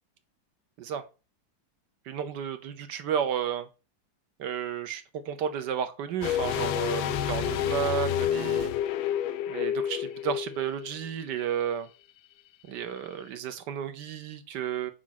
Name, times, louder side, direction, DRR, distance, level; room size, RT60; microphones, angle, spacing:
voice 1, 2.1-3.7 4.4-8.7 9.5-11.9 12.7-14.9, right 9 dB, 70° right, 1.4 m, -32 dB
sound 1, 6.2-11.1 11.3-11.4, left 11 dB, 85° left, 1.4 m, -29 dB
5.1 x 4.9 x 5.8 m
omnidirectional pair, 2.1 m